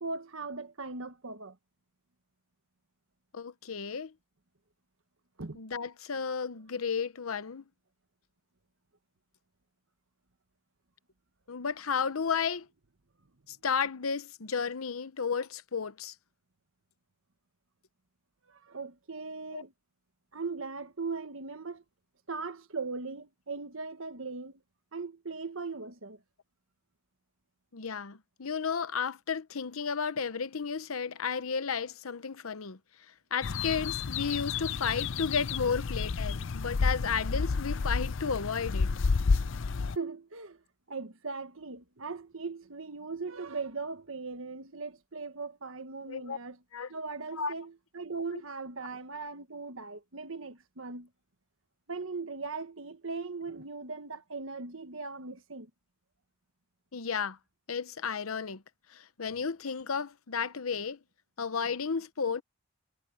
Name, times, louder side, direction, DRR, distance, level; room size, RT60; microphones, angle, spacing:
voice 1, 0.0-1.6 5.4-5.6 11.9-12.0 18.5-19.7 20.3-21.8 22.3-24.6 24.9-26.2 39.9-40.6 40.9-46.6 46.9-51.1 51.9-55.7, right 4 dB, 75° right, 1.4 m, -39 dB
voice 2, 3.3-4.1 5.6-7.6 11.5-12.7 13.5-16.1 19.5-19.6 27.7-32.8 33.3-38.9 46.1-46.4 46.7-46.9 47.4-47.5 56.9-57.4 57.7-58.6 58.9-61.0 61.4-62.4, left 6 dB, 90° left, 0.9 m, -33 dB
sound 1, 33.4-40.0, left 4 dB, 60° left, 0.5 m, -30 dB
head